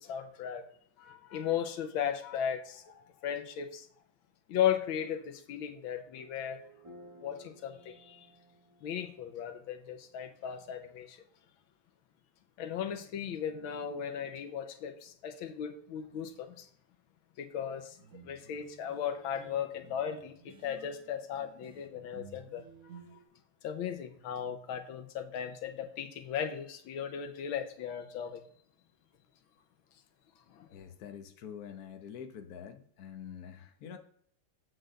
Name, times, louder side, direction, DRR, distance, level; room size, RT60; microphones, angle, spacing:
voice 1, 0.0-0.6 1.0-3.9 4.5-6.6 7.2-8.3 8.8-11.2 12.6-16.7 17.4-18.0 18.2-22.6 23.1-23.2 23.6-28.4 30.5-30.7, left 9 dB, 85° left, 1.6 m, -36 dB
sound 1, 6.1-10.6, right 1 dB, 15° right, 1.2 m, -57 dB
sound 2, 18.0-23.2, right 6 dB, 55° right, 1.0 m, -55 dB
voice 2, 30.7-34.0, left 8 dB, 55° left, 1.2 m, -46 dB
7.8 x 4.1 x 6.4 m
omnidirectional pair, 2.2 m